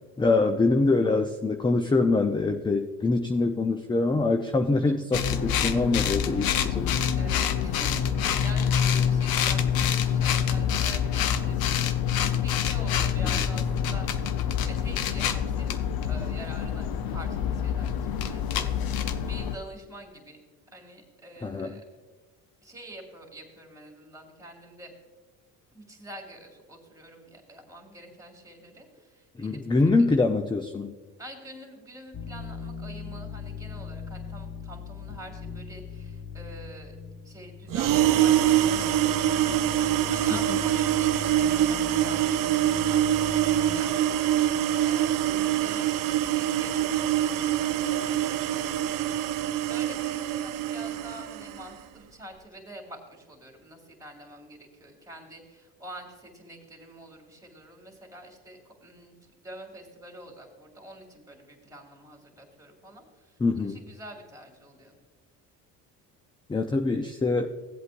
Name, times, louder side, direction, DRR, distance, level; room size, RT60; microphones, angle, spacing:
voice 1, 0.2-7.0 13.2-13.4 21.4-21.8 29.4-30.9 40.5-40.6 63.4-63.8 66.5-67.5, left 3 dB, 10° left, 6 dB, 0.5 m, -24 dB
voice 2, 4.7-5.0 7.2-14.1 14.6-20.4 20.7-21.8 22.6-24.9 25.7-29.9 31.2-36.9 37.2-65.0, right 1 dB, 10° right, 2 dB, 2.6 m, -46 dB
sound 1, 5.1-19.6, left 8 dB, 60° left, 0.8 m, -26 dB
sound 2, 32.1-49.5, left 5 dB, 30° left, 1.2 m, -41 dB
sound 3, 37.7-51.6, right 12 dB, 55° right, 0.7 m, -25 dB
16.0 x 8.0 x 2.6 m, 1.4 s
hypercardioid pair, 70°, 40 cm